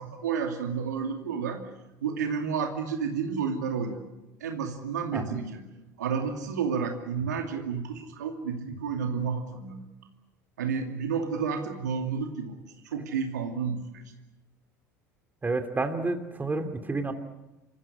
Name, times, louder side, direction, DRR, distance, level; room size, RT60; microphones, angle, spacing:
voice 1, 0.0-1.6 2.0-4.0 4.4-5.6 6.0-9.8 10.6-12.6 12.8-14.0, right 6 dB, 80° right, 4 dB, 2.5 m, -31 dB
voice 2, 15.4-17.1, right 3 dB, 20° right, 8 dB, 2.8 m, -30 dB
28.0 x 15.5 x 9.9 m, 1.0 s
figure-of-eight pair, 70°, 9 cm